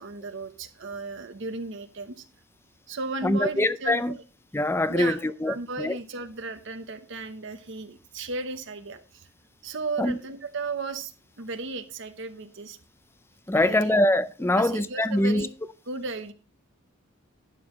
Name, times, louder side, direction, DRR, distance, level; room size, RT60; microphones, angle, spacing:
voice 1, 0.0-2.2 2.9-4.2 4.9-9.3 9.6-11.1 11.4-12.8 13.6-13.9 14.5-15.5 15.9-16.3, right 3 dB, 60° right, 0.9 m, -35 dB
voice 2, 3.2-4.1 4.5-5.9 10.0-10.2 13.5-15.5, left 1 dB, 10° left, 0.4 m, -24 dB
11.5 x 9.2 x 3.2 m
head